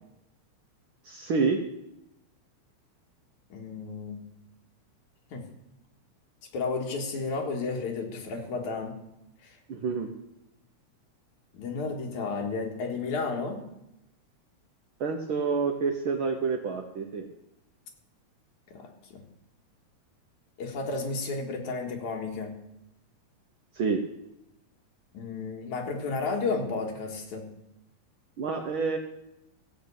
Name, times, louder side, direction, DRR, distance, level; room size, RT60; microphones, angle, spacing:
voice 1, 1.0-1.6 9.7-10.1 15.0-17.3 23.7-24.0 28.4-29.0, right 5 dB, 65° right, 3 dB, 1.3 m, -28 dB
voice 2, 3.5-4.2 5.3-5.5 6.5-9.0 9.4-9.6 11.5-13.7 18.7-19.2 20.6-22.6 25.1-27.5, left 4 dB, 85° left, 2 dB, 3.1 m, -32 dB
15.0 x 6.0 x 8.4 m, 0.87 s
omnidirectional pair, 3.3 m